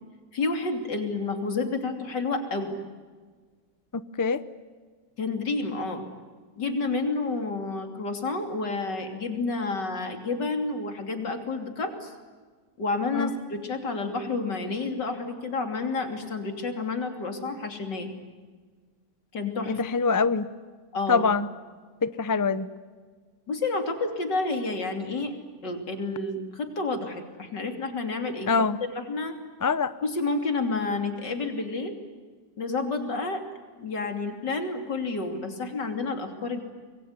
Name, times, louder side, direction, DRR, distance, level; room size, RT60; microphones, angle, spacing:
voice 1, 0.3-2.8 5.2-6.0 6.6-12.1 12.8-18.1 19.3-19.8 20.9-21.2 23.5-25.3 25.6-28.5 28.9-29.4 30.0-31.9 32.6-33.4 33.8-36.6, left 3 dB, 80° left, 5 dB, 3.6 m, -30 dB
voice 2, 3.9-4.4 13.1-13.3 19.7-20.5 21.1-21.5 22.0-22.7 28.5-28.8 29.6-29.9, left 4 dB, 30° left, 14 dB, 0.3 m, -24 dB
26.0 x 22.0 x 9.6 m, 1.5 s
omnidirectional pair, 1.8 m